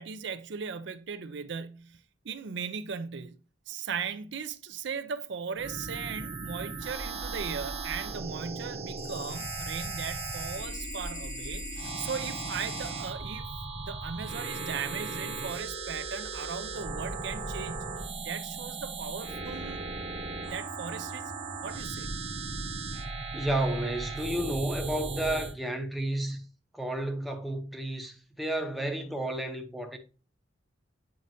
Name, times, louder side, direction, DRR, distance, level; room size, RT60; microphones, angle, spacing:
voice 1, 0.0-13.5 13.8-17.9 18.2-19.9 20.4-21.3 21.6-22.1, right 6 dB, 65° right, 0.5 m, -38 dB
sound 1, 5.6-25.5, right 3 dB, 35° right, 1.0 m, -37 dB
sound 2, 9.0-13.0, left 12 dB, 40° left, 0.3 m, -44 dB
voice 2, 23.3-26.4 26.7-30.0, right 1 dB, ahead, 0.8 m, -31 dB
7.7 x 5.3 x 2.6 m
head